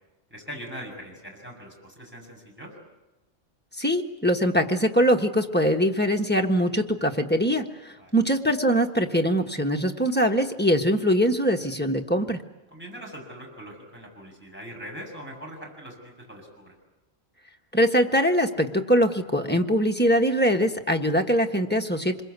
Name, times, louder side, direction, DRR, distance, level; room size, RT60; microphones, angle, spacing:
voice 1, 0.3-2.7 8.0-8.2 12.7-16.7, equal, 10° right, 1 dB, 6.9 m, -41 dB
voice 2, 3.8-12.4 17.7-22.2, equal, 10° left, 2 dB, 1.4 m, -22 dB
26.5 x 22.0 x 8.3 m, 1.1 s
omnidirectional pair, 1.3 m